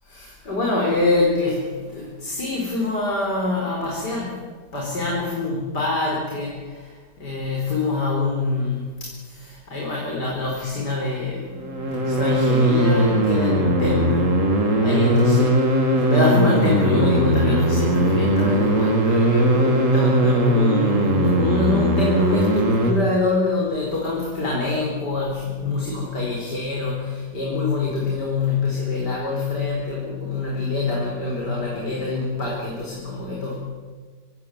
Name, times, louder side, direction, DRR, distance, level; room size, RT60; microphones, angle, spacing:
voice 1, 0.1-4.3 4.7-6.5 7.2-8.9 9.3-14.3 14.8-33.6, left 3 dB, 65° left, -3 dB, 5.2 m, -25 dB
sound 1, 11.5-22.9, right 1 dB, 45° right, 2.9 m, -19 dB
24.5 x 17.5 x 9.5 m, 1.5 s
omnidirectional pair, 1.9 m